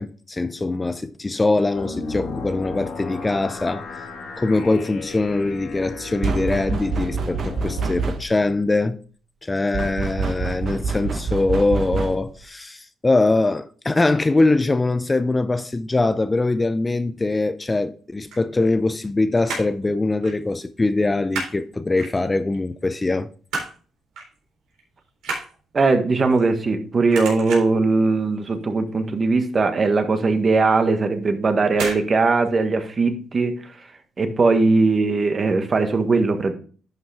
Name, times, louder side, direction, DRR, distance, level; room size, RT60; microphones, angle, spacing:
voice 1, 0.0-4.1 4.4-9.0 9.4-23.3, left 2 dB, 20° left, 0.5 m, -22 dB
sound 1, 1.7-8.0, left 4 dB, 70° left, 2.5 m, -35 dB
sound 2, 6.2-8.5 9.7-12.4, right 4 dB, 55° right, 1.1 m, -26 dB
sound 3, 18.1-19.1 19.3-19.8 20.2-20.4 20.7-21.6 22.0-22.6 23.0-23.8 24.2-24.4 24.7-26.8 27.1-27.9 28.3-28.6 28.9-29.0 29.3-29.4 29.9-30.0 30.8-31.1 31.7-32.1 32.3-32.4, right 3 dB, 85° right, 3.8 m, -31 dB
voice 2, 25.7-33.5 34.2-36.5, right 3 dB, 35° right, 1.4 m, -20 dB
11.0 x 5.6 x 3.4 m
cardioid pair, 90°, 0 cm